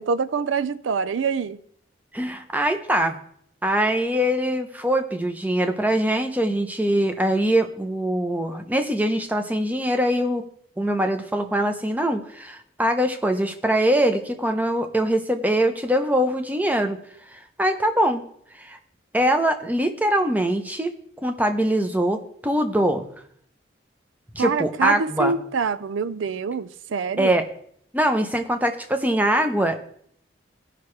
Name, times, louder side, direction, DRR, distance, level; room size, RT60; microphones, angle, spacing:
voice 1, 0.0-1.6 24.4-27.4, right 5 dB, 90° right, 0.4 m, -25 dB
voice 2, 2.1-3.2 3.6-10.4 10.8-17.0 17.3-18.2 18.6-18.8 19.1-20.9 21.2-23.1 24.3-25.3 27.2-27.4 27.9-29.8, right 1 dB, 10° right, 0.7 m, -23 dB
16.5 x 5.8 x 3.2 m
head